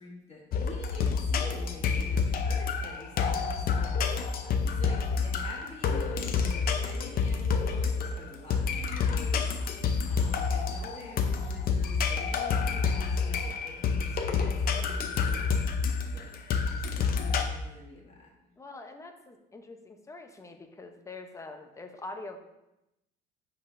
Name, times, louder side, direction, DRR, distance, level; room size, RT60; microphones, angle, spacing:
voice 1, 0.0-3.9 4.6-9.5 10.1-15.4 16.1-18.3, left 2 dB, 35° left, -3 dB, 1.8 m, -46 dB
sound 1, 0.5-17.4, left 5 dB, 50° left, 0.6 m, -28 dB
voice 2, 3.4-3.8 18.6-22.4, left 2 dB, 15° left, 5 dB, 0.7 m, -45 dB
9.9 x 4.0 x 2.6 m, 0.90 s
cardioid pair, 110°, 19 cm